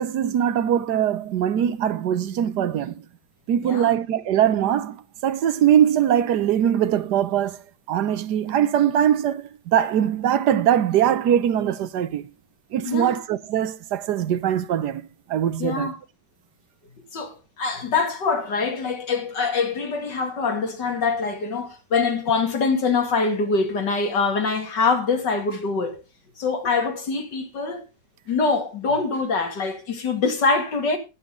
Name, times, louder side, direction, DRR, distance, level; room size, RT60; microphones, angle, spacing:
voice 1, 0.0-3.0 3.5-12.3 12.7-15.9, right 10 dB, 75° right, 1.4 m, -22 dB
voice 2, 12.9-13.2 15.6-16.0 17.1-26.0 26.4-27.9 28.3-31.0, left 4 dB, 85° left, 2.8 m, -24 dB
20.0 x 7.3 x 3.8 m
omnidirectional pair, 1.8 m